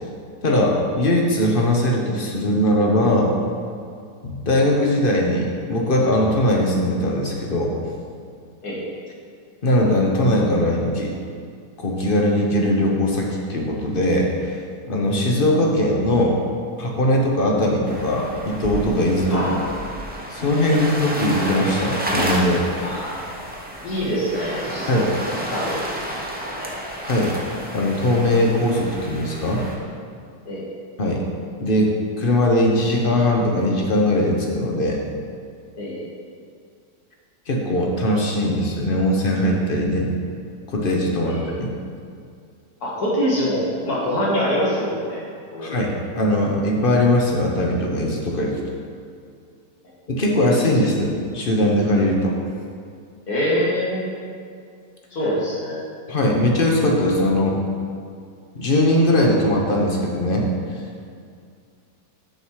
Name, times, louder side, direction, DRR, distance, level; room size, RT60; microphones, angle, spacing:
voice 1, 0.4-3.4 4.2-7.7 9.6-11.1 11.8-14.5 14.9-16.4 16.8-19.5 20.3-22.9 24.9-25.1 27.0-27.3 27.7-29.6 31.0-31.2 31.6-35.0 37.5-40.1 40.7-41.7 45.6-48.6 50.1-52.4 56.1-57.6 58.5-60.5, left 1 dB, 40° left, 0 dB, 1.0 m, -20 dB
sound 1, 17.9-29.7, right 1 dB, 10° right, 0.4 m, -30 dB
voice 2, 19.3-19.8 20.7-20.8 22.8-23.2 23.8-25.1 25.4-25.8 26.4-26.7 30.5-30.6 35.7-36.1 41.2-41.6 42.8-45.2 45.5-45.8 53.3-54.1 55.1-55.8, equal, 60° left, -6 dB, 2.4 m, -25 dB
7.0 x 6.7 x 4.8 m, 2.3 s
omnidirectional pair, 1.9 m